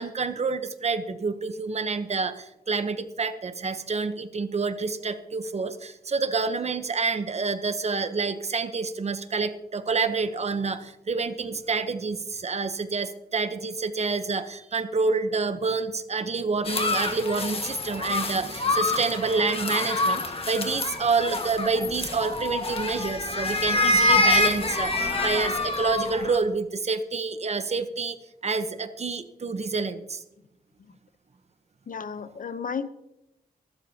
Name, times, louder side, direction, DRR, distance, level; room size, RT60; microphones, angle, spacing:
voice 1, 0.0-28.2 28.4-30.2, right 4 dB, 40° right, 10 dB, 0.9 m, -28 dB
sound 1, 16.6-26.4, left 2 dB, 35° left, 1.6 m, -26 dB
voice 2, 31.9-32.9, left 6 dB, 55° left, 12 dB, 0.8 m, -33 dB
23.0 x 12.5 x 2.8 m, 0.88 s
wide cardioid pair, 125°, 17 cm